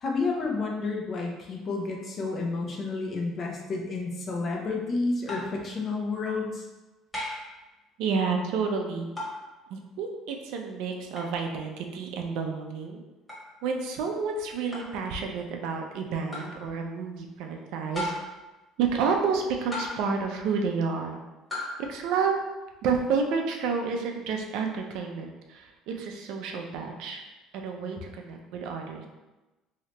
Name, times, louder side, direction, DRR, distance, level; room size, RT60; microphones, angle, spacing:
voice 1, 0.0-6.6, left 3 dB, 40° left, 0 dB, 0.7 m, -30 dB
sound 1, 5.3-5.6 7.1-7.5 9.2-9.4 11.2-11.3 13.3-13.5 14.7-15.0 16.3-16.6 17.9-18.4 19.7-20.2 21.5-21.8, left 1 dB, 5° left, 1.2 m, -35 dB
voice 2, 8.0-9.1 9.7-13.0 13.6-18.1 18.8-21.2 21.9-22.3 22.8-27.2 27.5-29.1, right 5 dB, 75° right, 3 dB, 0.5 m, -30 dB
3.2 x 2.8 x 2.9 m, 1.1 s
cardioid pair, 105°, 0 cm